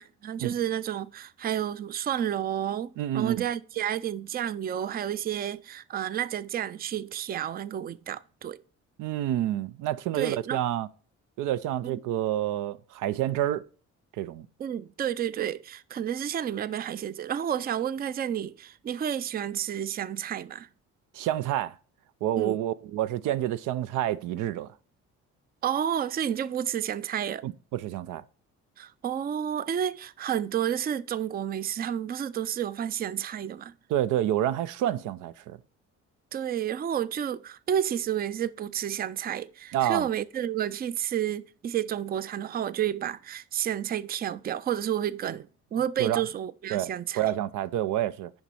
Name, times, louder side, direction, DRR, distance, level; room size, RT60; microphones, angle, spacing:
voice 1, 0.0-8.6 10.2-10.6 11.8-12.0 14.6-20.7 22.4-22.6 25.6-27.4 28.8-33.7 36.3-47.2, right 10 dB, 30° right, 0.4 m, -30 dB
voice 2, 3.0-3.5 9.0-10.9 11.4-13.6 14.2-14.5 21.1-21.7 22.2-24.7 27.4-28.2 33.9-35.6 39.7-40.1 46.0-46.2 46.7-46.9 47.1-48.3, right 12 dB, 85° right, 0.5 m, -28 dB
7.1 x 5.2 x 5.4 m
cardioid pair, 90°, 30 cm